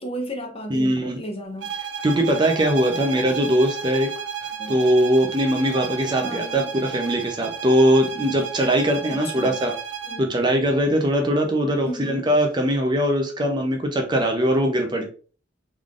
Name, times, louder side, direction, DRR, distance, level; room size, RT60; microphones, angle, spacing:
voice 1, 0.0-1.7 4.6-4.8 6.2-6.7 9.1-9.6 10.1-10.3 11.8-12.3, equal, 30° left, 4 dB, 0.7 m, -34 dB
voice 2, 0.7-1.2 2.0-4.1 4.7-9.7 10.2-15.1, equal, 25° right, 3 dB, 0.6 m, -21 dB
sound 1, 1.6-10.3, right 7 dB, 80° right, 0.4 m, -33 dB
3.7 x 3.3 x 2.5 m, 0.38 s
head